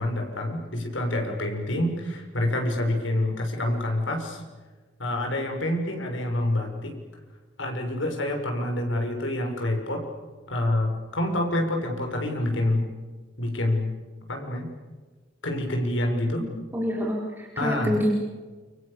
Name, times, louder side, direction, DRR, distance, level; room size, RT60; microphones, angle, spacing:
voice 1, 0.0-4.4 5.0-6.9 7.6-10.0 10.5-12.9 13.4-13.9 14.3-14.7 15.4-16.4 17.6-17.9, left 1 dB, 90° left, 2 dB, 6.8 m, -27 dB
voice 2, 16.4-18.1, equal, 10° right, -2 dB, 4.1 m, -27 dB
29.5 x 25.5 x 6.9 m, 1.4 s
head